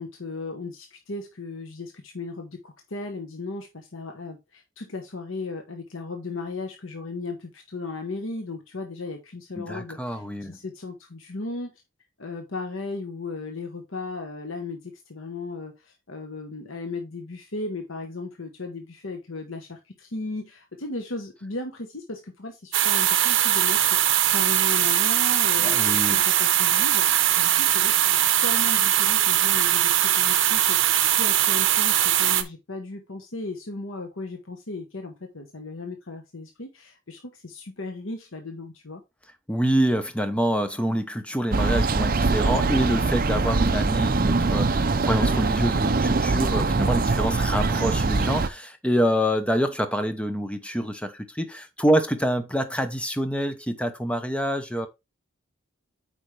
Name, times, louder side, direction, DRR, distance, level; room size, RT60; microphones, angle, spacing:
voice 1, 0.0-11.7 12.2-28.1 28.4-39.0 42.7-42.9, left 3 dB, 75° left, 1.1 m, -36 dB
voice 2, 9.6-10.6 25.6-26.2 39.5-54.9, equal, 5° left, 0.8 m, -26 dB
sound 1, 22.7-32.4, right 11 dB, 65° right, 0.9 m, -21 dB
sound 2, 41.5-48.5, right 3 dB, 45° right, 0.6 m, -23 dB
8.5 x 5.2 x 3.3 m
head